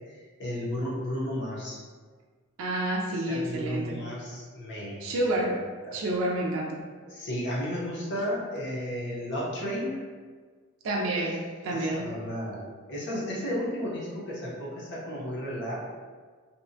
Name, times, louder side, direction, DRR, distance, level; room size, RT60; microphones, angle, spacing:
voice 1, 0.0-1.8 3.1-5.1 5.4-5.5 5.8-6.1 7.0-10.0 11.7-15.8, equal, 55° left, -6 dB, 0.8 m, -33 dB
voice 2, 2.6-4.0 5.0-6.9 10.8-12.1, right 1 dB, 65° right, -1 dB, 0.4 m, -29 dB
2.7 x 2.1 x 2.6 m, 1.5 s
head